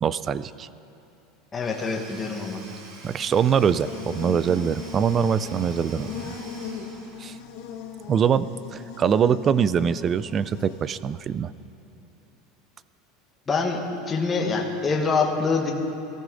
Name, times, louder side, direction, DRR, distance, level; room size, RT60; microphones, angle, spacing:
voice 1, 0.0-0.7 3.0-6.3 7.2-7.4 8.1-11.5, right 7 dB, 25° right, 17 dB, 0.4 m, -23 dB
voice 2, 1.5-2.6 13.5-13.8 14.1-15.7, left 4 dB, 20° left, 0 dB, 1.3 m, -25 dB
Domestic sounds home sounds / Tools, 1.5-7.6, right 3 dB, 60° right, 2.8 m, -47 dB
Buzz, 3.1-11.2, left 7 dB, 60° left, 1.5 m, -39 dB
20.0 x 14.0 x 3.9 m, 2.8 s
supercardioid pair, 150°, 0 cm